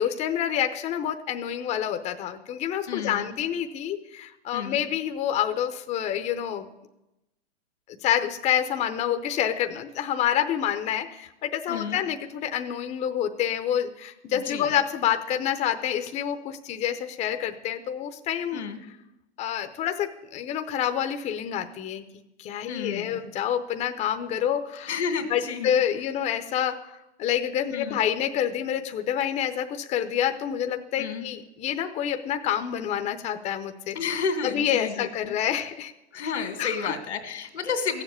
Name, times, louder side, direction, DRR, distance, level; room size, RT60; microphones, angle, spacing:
voice 1, 0.0-6.7 8.0-18.6 19.4-22.1 22.4-24.9 25.3-26.9 27.2-34.0 34.4-35.9 36.6-36.9, left 10 dB, 20° left, 8 dB, 0.6 m, -28 dB
voice 2, 2.9-3.3 4.5-4.8 11.7-12.0 14.3-14.7 18.5-18.8 22.7-23.2 24.9-25.8 27.7-28.0 31.0-31.3 33.9-35.4 36.1-38.0, left 6 dB, 90° left, 8 dB, 2.2 m, -31 dB
14.5 x 7.4 x 8.4 m, 0.94 s
hypercardioid pair, 130°, 33 cm